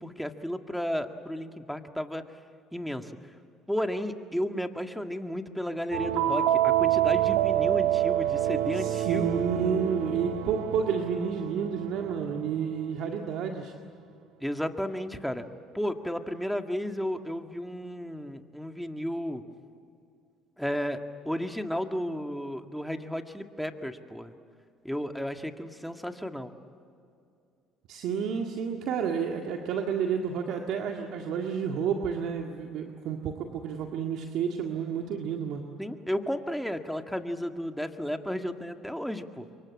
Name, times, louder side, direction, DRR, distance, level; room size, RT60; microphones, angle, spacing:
voice 1, 0.0-2.2 2.7-3.1 3.7-9.4 14.4-15.5 15.7-19.4 20.6-24.3 24.8-26.5 35.8-39.5, equal, ahead, 5 dB, 1.9 m, -33 dB
sound 1, 5.9-12.4, right 12 dB, 85° right, 1.6 m, -27 dB
voice 2, 8.7-13.7 27.9-35.6, right 7 dB, 70° right, 2 dB, 1.9 m, -30 dB
26.5 x 24.0 x 8.7 m, 2.5 s
supercardioid pair, 80°, 0 cm